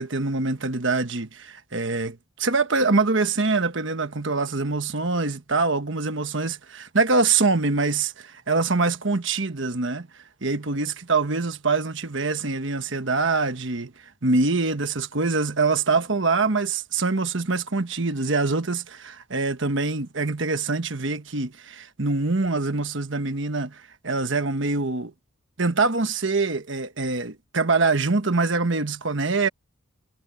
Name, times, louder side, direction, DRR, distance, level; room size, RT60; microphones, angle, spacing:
voice 1, 0.0-10.1 10.4-13.9 14.2-25.1 25.6-29.5, right 3 dB, 60° right, 1.3 m, -24 dB
head